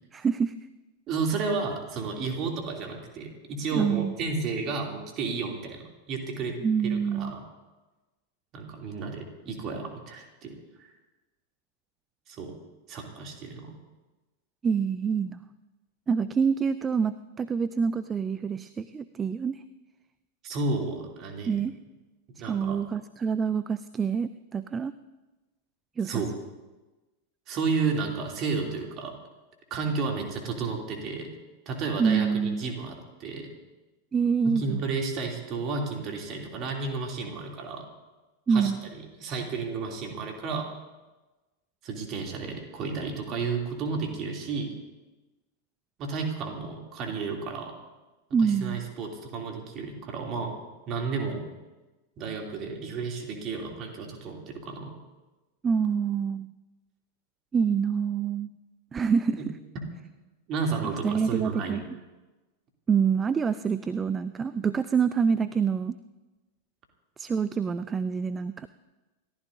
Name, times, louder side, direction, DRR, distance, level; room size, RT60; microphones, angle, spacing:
voice 1, 0.1-0.5 3.7-4.1 6.6-7.3 14.6-15.4 16.1-19.6 21.5-21.7 22.5-24.9 26.0-26.2 32.0-32.6 34.1-34.8 38.5-38.8 48.3-48.8 55.6-56.5 57.5-58.5 58.9-59.4 61.0-61.8 62.9-66.0 67.2-68.7, right 6 dB, 20° right, 14 dB, 0.4 m, -26 dB
voice 2, 1.1-6.5 6.8-7.4 8.5-10.9 12.3-12.5 12.9-13.8 20.4-21.6 22.4-22.8 26.0-26.3 27.5-29.1 29.7-31.3 31.7-33.5 34.4-37.9 38.5-40.7 41.8-44.7 46.0-47.7 48.4-50.5 50.9-51.5 52.2-55.0 60.5-61.9, right 4 dB, 35° right, 1 dB, 2.8 m, -32 dB
29.0 x 14.0 x 2.7 m, 1.2 s
figure-of-eight pair, 90°, 0 cm